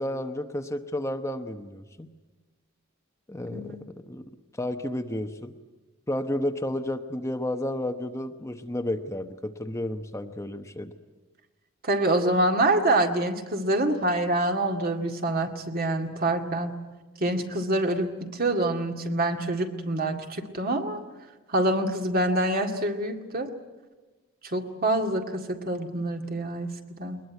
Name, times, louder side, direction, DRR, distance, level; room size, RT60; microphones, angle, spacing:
voice 1, 0.0-2.1 3.3-3.8 4.1-4.2 4.6-5.5 6.1-10.9, left 1 dB, 15° left, 7 dB, 0.9 m, -31 dB
voice 2, 11.8-16.8 17.2-21.0 21.5-23.5 24.4-27.2, right 1 dB, 45° right, 4 dB, 2.1 m, -26 dB
21.5 x 21.0 x 9.4 m, 1.2 s
head